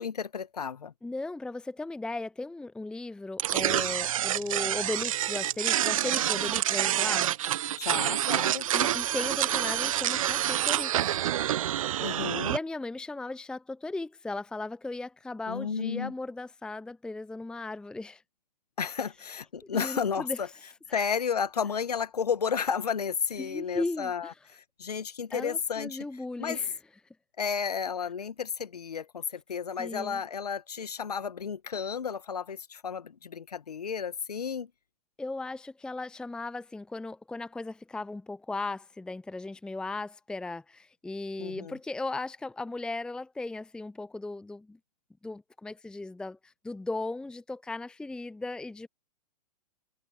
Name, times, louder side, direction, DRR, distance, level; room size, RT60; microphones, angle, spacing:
voice 1, 0.0-0.9 7.8-8.7 12.0-12.6 15.5-16.1 18.8-20.5 20.9-26.0 26.4-26.6 27.4-34.7 41.4-41.8, left 6 dB, 70° left, 1.8 m, -32 dB
voice 2, 1.0-7.3 8.7-11.2 11.8-18.2 19.7-20.4 23.4-24.3 25.3-26.7 29.8-30.2 35.2-44.8 45.2-48.9, left 2 dB, 5° left, 0.8 m, -37 dB
sound 1, 3.4-12.6, right 12 dB, 55° right, 0.9 m, -27 dB
figure-of-eight pair, 110°, 20 cm